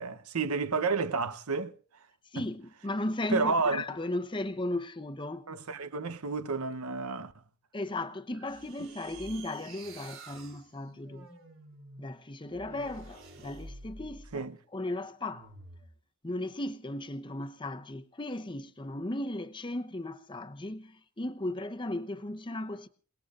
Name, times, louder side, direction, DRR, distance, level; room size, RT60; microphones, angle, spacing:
voice 1, 0.0-1.7 3.3-3.8 5.5-7.3 14.3-14.6, right 4 dB, 85° right, 0.9 m, -30 dB
voice 2, 2.3-5.5 7.7-11.3 12.0-14.5 14.7-15.5 16.2-22.9, left 1 dB, 20° left, 0.8 m, -36 dB
sound 1, 8.4-14.4 15.3-15.9, right 2 dB, 60° right, 3.3 m, -49 dB
28.5 x 18.5 x 2.5 m
head